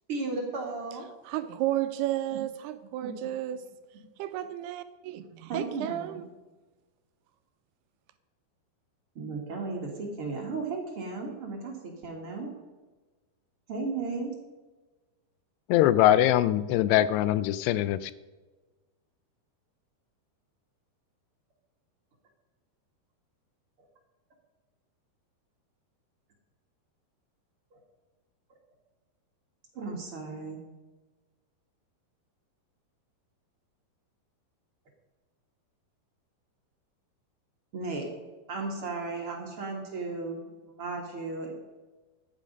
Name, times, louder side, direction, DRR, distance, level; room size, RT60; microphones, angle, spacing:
voice 1, 0.1-1.1 3.0-3.1 5.5-6.2 9.2-12.5 13.7-14.3 27.7-27.8 29.7-30.6 37.7-38.1 38.5-41.5, right 3 dB, 45° right, 2.2 m, -35 dB
voice 2, 1.2-3.6 4.2-6.2, right 13 dB, 80° right, 2.6 m, -32 dB
voice 3, 15.7-18.1, left 13 dB, 85° left, 2.7 m, -22 dB
14.5 x 10.5 x 5.3 m
omnidirectional pair, 4.7 m